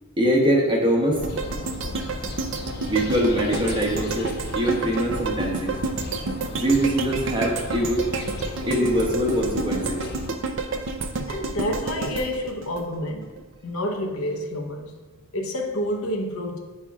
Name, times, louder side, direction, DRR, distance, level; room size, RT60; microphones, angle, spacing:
voice 1, 0.2-1.3 2.8-5.7 6.5-8.1 8.7-10.0, equal, 20° right, -1 dB, 0.9 m, -23 dB
sound 1, 1.1-10.4, left 2 dB, 45° left, 0.5 m, -36 dB
sound 2, 1.2-13.4 13.8-13.9, right 3 dB, 60° right, 0.5 m, -30 dB
voice 2, 11.3-13.3 13.6-15.0 15.3-16.6, left 1 dB, 85° left, 2 dB, 0.9 m, -29 dB
9.6 x 4.4 x 2.3 m, 1.4 s
head